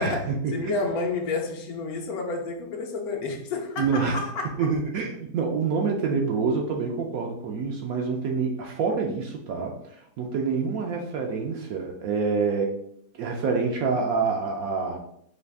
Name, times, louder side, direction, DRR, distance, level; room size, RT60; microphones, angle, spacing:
voice 1, 0.0-0.9 3.8-4.2 4.6-12.8 13.2-15.0, right 5 dB, 70° right, 1 dB, 0.9 m, -27 dB
voice 2, 0.5-4.7, left 3 dB, 65° left, 2 dB, 1.1 m, -30 dB
5.0 x 2.4 x 3.4 m, 0.71 s
omnidirectional pair, 1.8 m